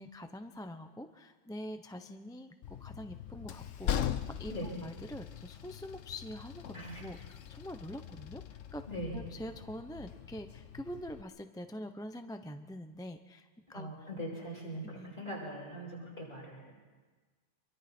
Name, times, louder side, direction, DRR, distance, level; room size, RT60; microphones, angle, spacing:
voice 1, 0.0-8.8 9.1-14.1 14.9-15.1, equal, 5° left, 7 dB, 0.5 m, -45 dB
Train, 2.6-11.2, left 10 dB, 85° left, 1.2 m, -41 dB
voice 2, 6.7-7.1 8.9-9.2 13.7-16.7, equal, 40° left, -4 dB, 7.4 m, -41 dB
26.5 x 23.5 x 4.4 m, 1.4 s
omnidirectional pair, 1.3 m